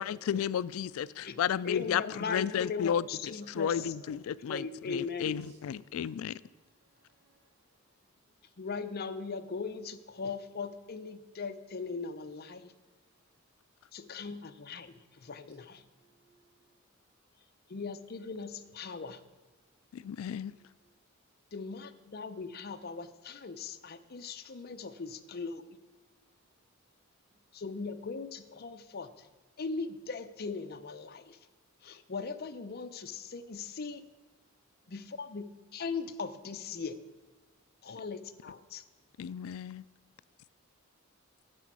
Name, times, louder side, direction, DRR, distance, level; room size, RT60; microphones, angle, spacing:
voice 1, 0.0-3.0 3.5-6.3 19.9-20.5 39.2-39.8, left 8 dB, 90° left, 0.3 m, -33 dB
voice 2, 0.9-1.7 3.3-4.4 5.2-5.7 6.0-7.6 8.0-8.1 11.7-11.8 15.0-16.7 20.3-21.0 24.0-24.1 27.3-27.4 34.8-34.9 36.6-36.7, right 1 dB, 55° right, 2.2 m, -60 dB
voice 3, 1.6-3.9 4.3-5.4 8.6-12.7 13.9-14.9 15.2-15.8 17.7-19.2 21.5-25.6 27.5-29.1 29.6-31.4 31.8-34.0 34.9-37.0 37.8-38.8, left 4 dB, 50° left, 0.6 m, -39 dB
11.0 x 6.9 x 6.1 m
head